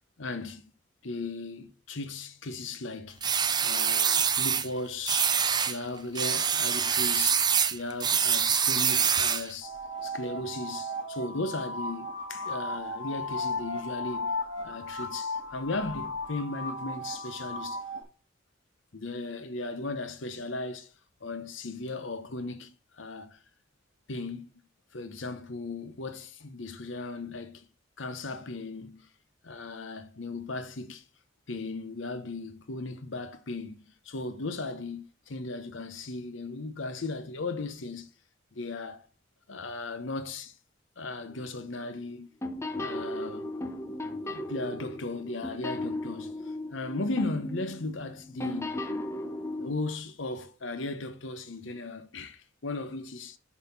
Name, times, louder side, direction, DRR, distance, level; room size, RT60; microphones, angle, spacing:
voice 1, 0.2-0.6 1.0-3.3 3.6-9.8 10.0-14.4 14.6-17.8 18.9-20.9 21.2-23.4 24.1-24.5 24.9-27.7 28.0-29.1 29.4-31.0 31.5-38.1 38.5-39.1 39.5-40.5 41.0-42.3 42.8-43.5 44.2-48.8 49.6-53.4, left 2 dB, 70° left, 0.9 m, -37 dB
sound 1, 3.2-4.7 5.1-5.8 6.2-9.5, right 7 dB, 20° right, 0.5 m, -25 dB
sound 2, 9.6-18.0, left 1 dB, 85° left, 2.3 m, -35 dB
sound 3, 41.3-41.6 42.4-49.7, left 1 dB, 15° left, 0.8 m, -36 dB
7.1 x 4.2 x 5.5 m
head